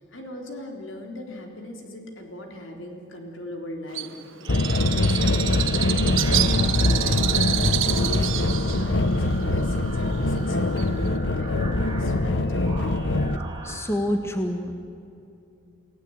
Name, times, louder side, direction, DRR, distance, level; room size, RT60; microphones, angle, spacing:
voice 1, 0.0-4.1 4.4-12.5, left 1 dB, 80° left, 2 dB, 3.7 m, -39 dB
Bird, 3.9-11.2, right 13 dB, 85° right, 1.2 m, -28 dB
sound 1, 4.4-13.9, right 3 dB, 25° right, 2.9 m, -39 dB
sound 2, 4.5-13.4, left 2 dB, 65° left, 1.0 m, -23 dB
voice 2, 13.6-14.7, equal, 15° left, 5 dB, 1.7 m, -27 dB
29.0 x 17.5 x 9.0 m, 2.6 s
head